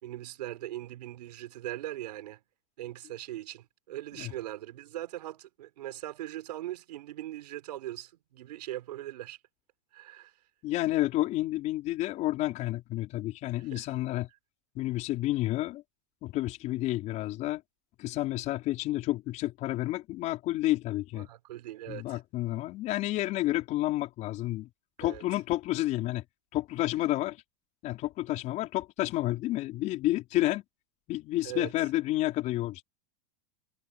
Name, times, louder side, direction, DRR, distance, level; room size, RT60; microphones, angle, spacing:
voice 1, 0.0-2.4 2.8-9.4 9.9-10.3 13.6-13.9 21.2-22.2 25.0-25.2 31.4-31.7, right 14 dB, 90° right, 4.4 m, -40 dB
voice 2, 10.6-14.3 14.7-15.8 16.2-17.6 18.0-21.3 21.9-24.7 25.0-26.2 26.5-27.4 27.8-30.6 31.1-32.8, left 16 dB, 35° left, 5.0 m, -30 dB
supercardioid pair, 155°, 20 cm